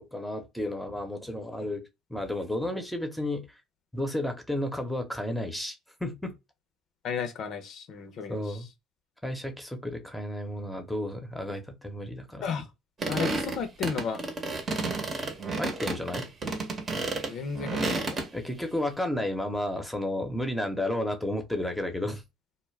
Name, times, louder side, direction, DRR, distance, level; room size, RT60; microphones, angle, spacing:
voice 1, 0.0-1.8 2.1-3.6 3.9-5.7 6.0-6.3 8.3-8.7 9.2-12.5 15.6-16.3 18.3-22.2, left 1 dB, 5° left, 0.8 m, -32 dB
voice 2, 7.0-8.6 12.4-12.7 13.1-14.2 17.3-18.1, left 6 dB, 60° left, 0.7 m, -33 dB
sound 1, 13.0-18.3, right 3 dB, 35° right, 0.8 m, -31 dB
2.3 x 2.1 x 3.2 m
supercardioid pair, 80°, 0 cm